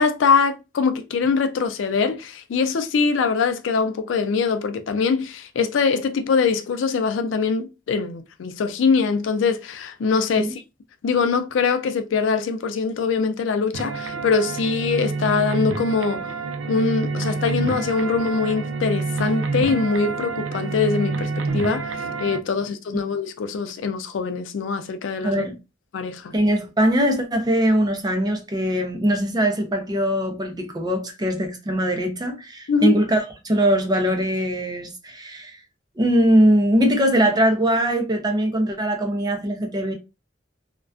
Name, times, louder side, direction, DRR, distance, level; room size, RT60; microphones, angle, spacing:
voice 1, 0.0-10.6 11.0-16.3 16.7-25.5 25.9-26.3 32.7-33.0, left 5 dB, 85° left, 0.4 m, -23 dB
sound 1, 13.7-22.4, right 3 dB, 90° right, 0.4 m, -28 dB
voice 2, 25.2-25.6 26.3-35.6 36.0-39.9, equal, 20° right, 0.5 m, -21 dB
2.3 x 2.2 x 2.3 m
head